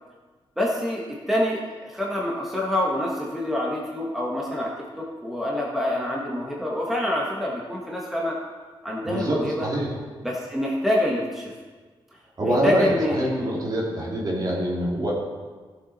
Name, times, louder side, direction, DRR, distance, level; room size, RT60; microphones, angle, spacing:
voice 1, 0.6-4.7 5.0-8.4 8.8-9.7 10.2-11.5 12.4-13.5, left 1 dB, 5° right, -4 dB, 1.5 m, -26 dB
voice 2, 9.1-10.0 12.4-15.1, right 1 dB, 40° right, -4 dB, 2.8 m, -25 dB
15.0 x 7.2 x 4.2 m, 1.4 s
wide cardioid pair, 125°, 10 cm